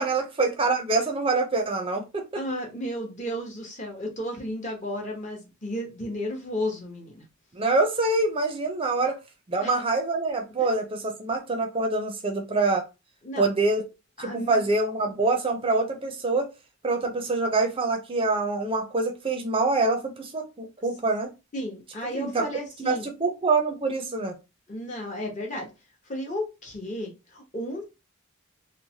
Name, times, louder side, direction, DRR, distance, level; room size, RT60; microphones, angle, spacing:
voice 1, 0.0-2.4 7.5-9.2 9.5-12.9 13.4-13.8 14.2-16.5 16.8-21.3 22.1-22.4 22.8-24.4, right 3 dB, 25° right, 0.4 m, -25 dB
voice 2, 2.3-7.1 9.0-9.1 9.6-9.7 10.6-10.7 13.2-13.4 14.2-14.6 21.5-23.0 24.7-25.7 26.1-27.9, equal, 35° left, 0.8 m, -33 dB
3.0 x 2.1 x 2.7 m
head